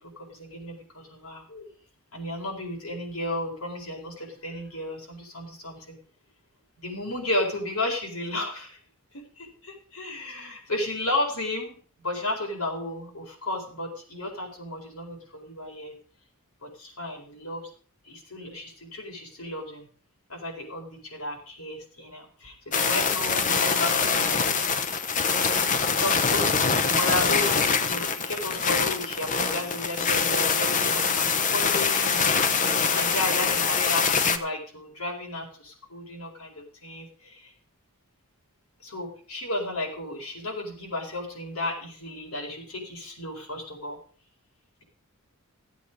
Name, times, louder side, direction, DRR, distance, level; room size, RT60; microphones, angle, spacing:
voice 1, 0.0-1.7 2.1-6.0 6.8-8.8 9.1-15.9 16.6-17.7 18.0-19.8 20.3-24.4 25.8-37.5 38.8-44.0, left 2 dB, 80° left, 0 dB, 4.5 m, -33 dB
sound 1, 22.7-34.4, left 5 dB, 35° left, 0.9 m, -24 dB
15.0 x 8.4 x 5.1 m, 0.43 s
head